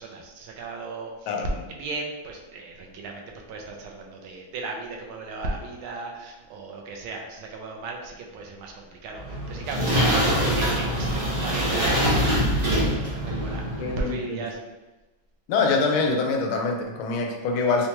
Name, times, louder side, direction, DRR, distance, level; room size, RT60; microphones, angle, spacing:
voice 1, 0.0-1.1 1.7-3.2 3.5-14.6, right 3 dB, 85° right, 1 dB, 1.4 m, -36 dB
sound 1, 9.2-14.1, equal, 55° right, 0.4 m, -24 dB
voice 2, 13.8-14.4 15.5-17.9, left 4 dB, 80° left, 2 dB, 1.4 m, -24 dB
4.5 x 2.2 x 2.9 m, 1.1 s
omnidirectional pair, 2.2 m